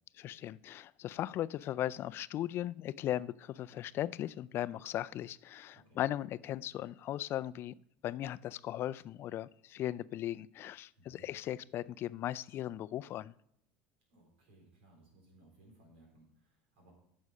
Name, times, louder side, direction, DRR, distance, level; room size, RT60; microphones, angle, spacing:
voice 1, 0.2-7.7 8.0-13.3, left 12 dB, 50° left, 0.3 m, -38 dB
voice 2, 5.7-6.1 10.9-11.3 14.1-16.9, right 1 dB, 90° right, 3.8 m, -62 dB
9.6 x 6.4 x 5.5 m
supercardioid pair, 100°, 5 cm